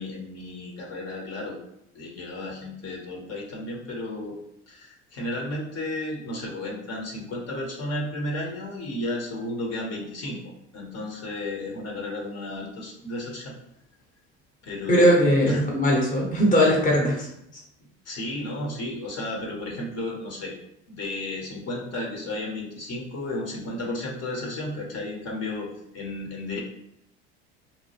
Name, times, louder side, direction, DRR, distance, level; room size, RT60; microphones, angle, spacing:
voice 1, 0.0-1.6 1.9-4.4 4.7-10.4 10.7-13.5 14.6-15.2 15.5-15.7 18.0-20.5 20.9-26.6, left 1 dB, 50° left, -2 dB, 1.0 m, -33 dB
voice 2, 14.9-17.3, equal, 25° left, -2 dB, 0.9 m, -20 dB
2.8 x 2.1 x 3.2 m, 0.79 s
hypercardioid pair, 70°, 32 cm